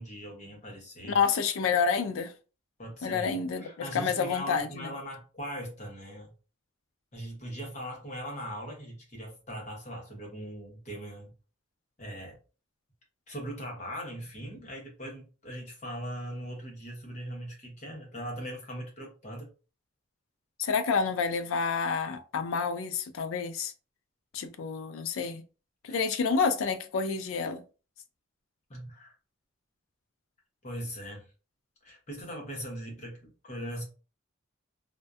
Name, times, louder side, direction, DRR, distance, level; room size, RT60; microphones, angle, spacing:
voice 1, 0.0-1.2 2.8-6.3 7.1-11.3 12.0-12.4 13.3-19.5 25.9-26.0 28.7-29.1 30.6-31.2 31.8-33.8, equal, 35° left, 0.8 m, -40 dB
voice 2, 1.1-2.3 3.0-4.9 20.6-23.7 24.3-25.4 25.8-27.6, left 5 dB, 85° left, 0.4 m, -29 dB
2.5 x 2.2 x 2.3 m
head